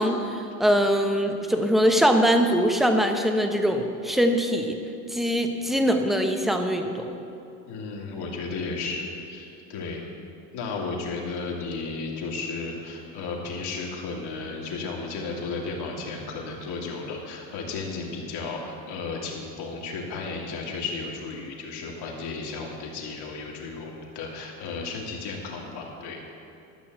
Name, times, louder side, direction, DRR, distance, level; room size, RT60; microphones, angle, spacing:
voice 1, 0.0-4.8 5.1-7.1, equal, ahead, 5 dB, 1.0 m, -22 dB
voice 2, 7.7-10.0 10.5-26.2, left 4 dB, 55° left, -1 dB, 2.8 m, -34 dB
12.5 x 6.2 x 7.9 m, 2.8 s
hypercardioid pair, 90°, 47 cm